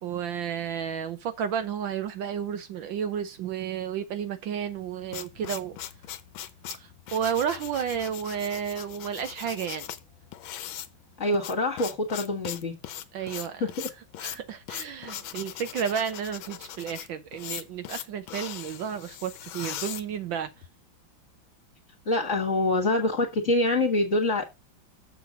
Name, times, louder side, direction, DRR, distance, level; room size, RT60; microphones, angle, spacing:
voice 1, 0.0-5.8 6.7-9.9 13.1-13.6 14.2-20.5, right 8 dB, 75° right, 1.5 m, -32 dB
sound 1, 4.7-20.7, left 11 dB, 85° left, 1.6 m, -40 dB
voice 2, 11.2-12.7 13.6-13.7 22.1-24.4, left 2 dB, 40° left, 1.9 m, -25 dB
7.1 x 6.0 x 5.1 m
omnidirectional pair, 2.2 m